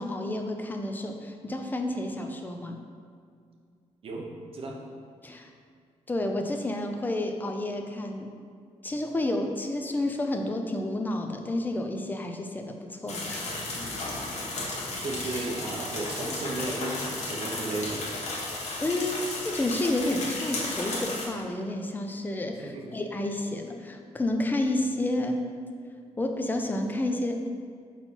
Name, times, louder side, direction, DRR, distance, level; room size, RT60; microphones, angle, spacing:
voice 1, 0.0-2.8 5.2-5.5 6.1-8.3 8.8-14.0 18.8-25.5 26.2-27.5, left 1 dB, 15° left, 4 dB, 0.4 m, -30 dB
sound 1, 13.1-21.3, left 2 dB, 70° left, 1.3 m, -34 dB
voice 2, 15.0-18.0 22.6-22.9, right 2 dB, 50° right, -1 dB, 0.8 m, -34 dB
4.4 x 4.1 x 5.6 m, 2.2 s
wide cardioid pair, 160°, 12 cm